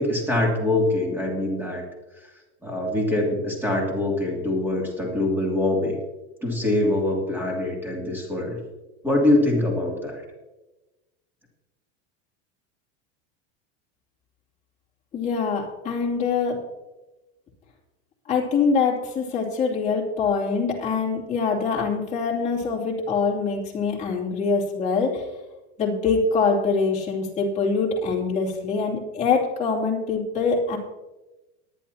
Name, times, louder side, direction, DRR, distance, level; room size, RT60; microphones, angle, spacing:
voice 1, 0.0-1.8 2.6-6.0 6.4-8.6 9.0-10.2, left 1 dB, 5° right, -1 dB, 2.7 m, -24 dB
voice 2, 15.1-16.6 18.3-25.3 25.8-30.8, left 5 dB, 20° left, -3 dB, 2.8 m, -24 dB
19.5 x 10.5 x 2.9 m, 1.1 s
supercardioid pair, 160°, 35 cm